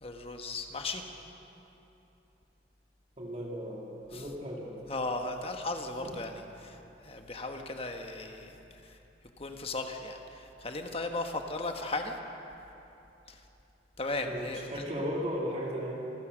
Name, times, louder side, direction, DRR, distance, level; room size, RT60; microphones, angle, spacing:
voice 1, 0.0-1.1 4.1-4.3 4.9-6.8 7.0-9.0 9.4-12.2 13.3-13.4 14.0-14.8, left 2 dB, 30° left, 4 dB, 1.3 m, -36 dB
voice 2, 3.2-4.8 6.0-6.1 14.2-15.9, equal, 35° right, -3 dB, 2.5 m, -36 dB
27.5 x 15.0 x 6.3 m, 3.0 s
head